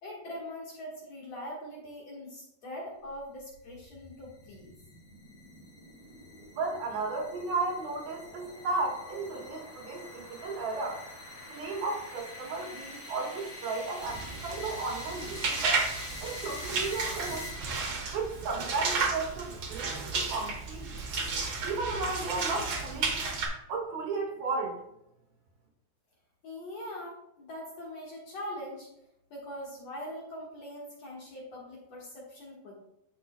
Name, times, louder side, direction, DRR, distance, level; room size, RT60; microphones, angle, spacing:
voice 1, 0.0-4.7 26.4-28.9 29.3-32.7, left 1 dB, 55° left, -4 dB, 2.3 m, -42 dB
sound 1, 3.2-18.0, left 2 dB, 15° left, 2.6 m, -45 dB
voice 2, 6.5-11.0 11.5-15.6 16.2-17.5 18.1-20.9 21.6-23.2 23.7-24.8, right 3 dB, 75° right, -1 dB, 3.4 m, -34 dB
sound 2, 14.0-23.5, right 4 dB, 55° right, 1.5 m, -33 dB
11.5 x 6.0 x 2.2 m, 0.82 s
omnidirectional pair, 4.3 m